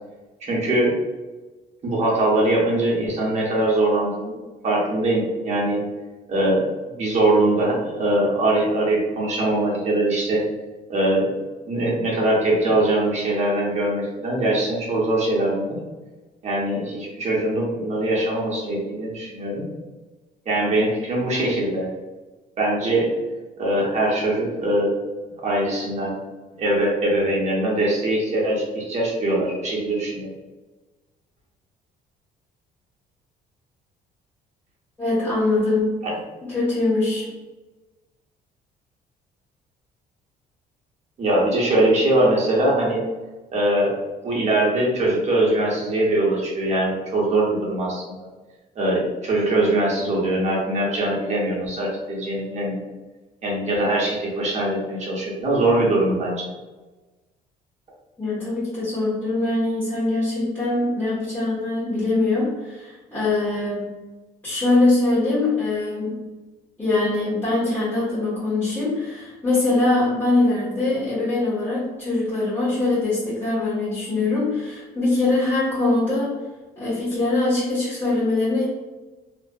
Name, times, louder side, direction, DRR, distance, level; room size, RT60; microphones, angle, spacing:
voice 1, 0.4-0.9 1.8-4.3 4.6-5.8 6.3-10.4 10.9-11.3 11.7-15.8 16.4-19.6 20.5-21.9 22.6-23.1 23.6-24.9 25.4-26.2 26.6-30.3 36.0-36.1 41.2-43.0 43.5-43.9 44.2-48.1 48.8-52.8 53.4-56.5, right 1 dB, 40° right, -4 dB, 0.9 m, -22 dB
voice 2, 35.0-36.0 36.5-37.3 58.2-64.0 64.4-66.2 66.8-76.4 76.8-78.7, left 2 dB, 10° left, -12 dB, 1.1 m, -22 dB
2.5 x 2.4 x 2.3 m, 1.2 s
cardioid pair, 110°, 17 cm